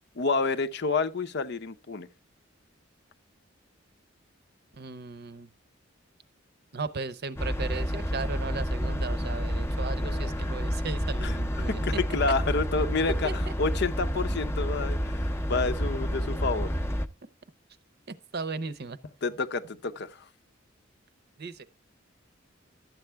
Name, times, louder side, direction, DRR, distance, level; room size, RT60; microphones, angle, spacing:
voice 1, 0.2-2.1 10.0-10.3 11.2-16.7 19.2-20.2, left 4 dB, 60° left, 0.7 m, -29 dB
voice 2, 4.7-5.5 6.7-12.0 13.2-13.5 18.1-19.0 21.4-21.6, right 4 dB, 55° right, 0.7 m, -36 dB
sound 1, 7.4-17.1, equal, 15° left, 0.6 m, -29 dB
12.0 x 7.6 x 3.4 m
head